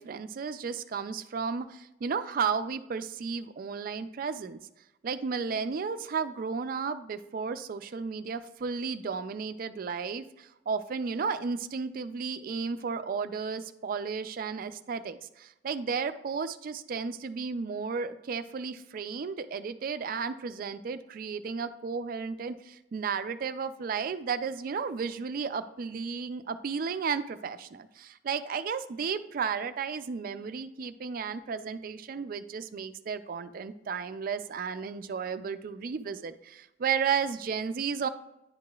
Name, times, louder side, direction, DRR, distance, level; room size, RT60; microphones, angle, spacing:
voice 1, 0.0-4.6 5.0-38.1, right 5 dB, 50° right, 11 dB, 0.3 m, -33 dB
10.0 x 4.8 x 2.3 m, 0.93 s
head